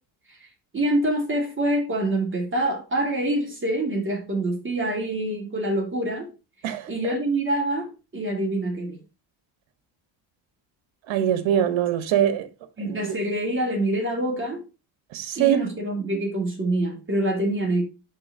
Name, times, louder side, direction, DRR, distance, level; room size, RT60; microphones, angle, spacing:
voice 1, 0.7-6.3 6.9-9.0 12.8-14.6 15.4-17.8, right 1 dB, 25° right, 2.5 m, -25 dB
voice 2, 11.1-12.5 12.9-13.1 15.1-15.6, right 10 dB, 70° right, 1.5 m, -23 dB
11.0 x 4.0 x 2.8 m
cardioid pair, 120°, 48 cm